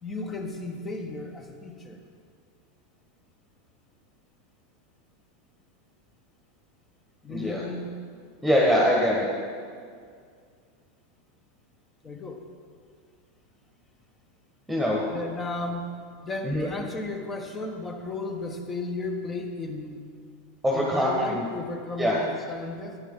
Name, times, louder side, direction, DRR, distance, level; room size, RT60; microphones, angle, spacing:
voice 1, 0.0-2.0 7.2-7.9 12.0-12.5 15.1-15.9 16.2-20.0 20.7-23.0, left 2 dB, 20° left, 5 dB, 1.2 m, -34 dB
voice 2, 7.3-7.6 8.4-9.3 14.7-15.0 16.4-16.7 20.6-21.5 22.0-22.2, equal, ahead, -3 dB, 1.6 m, -23 dB
14.0 x 9.6 x 3.9 m, 2.1 s
figure-of-eight pair, 85°, 0 cm